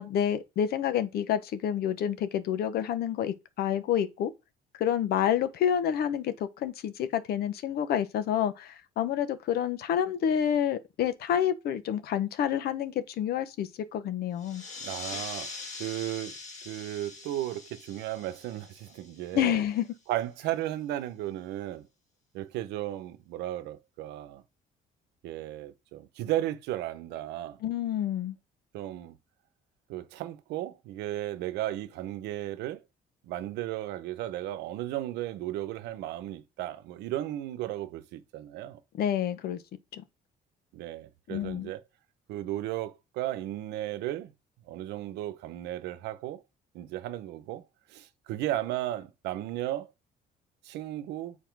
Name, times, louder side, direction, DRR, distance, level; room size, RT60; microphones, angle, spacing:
voice 1, 0.0-4.3 4.8-14.6 19.3-19.9 27.6-28.4 38.9-39.6 39.9-40.0 41.3-41.7, left 9 dB, 65° left, 0.9 m, -28 dB
sound 1, 14.4-19.6, left 3 dB, 45° left, 2.5 m, -43 dB
voice 2, 14.8-16.3 16.6-19.6 20.1-21.9 22.3-24.4 25.2-27.6 28.7-29.2 29.9-32.8 33.2-38.8 40.7-41.8 42.3-44.3 44.7-46.4 46.7-47.6 47.9-49.9 50.6-51.4, right 14 dB, 90° right, 0.8 m, -35 dB
7.2 x 4.2 x 4.6 m
cardioid pair, 110°, 17 cm